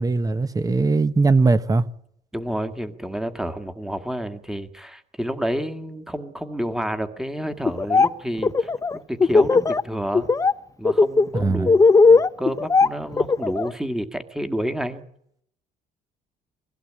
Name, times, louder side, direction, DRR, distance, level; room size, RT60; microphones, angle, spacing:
voice 1, 0.0-1.8 11.3-11.7, right 3 dB, 20° right, 1.0 m, -20 dB
voice 2, 2.3-8.7 9.1-10.3 10.8-15.0, equal, 5° right, 1.9 m, -29 dB
Laughter, 7.7-8.1 8.4-9.8 10.1-10.5 10.8-13.7, left 4 dB, 20° left, 0.8 m, -17 dB
22.5 x 16.0 x 8.8 m
cardioid pair, 110°, 17 cm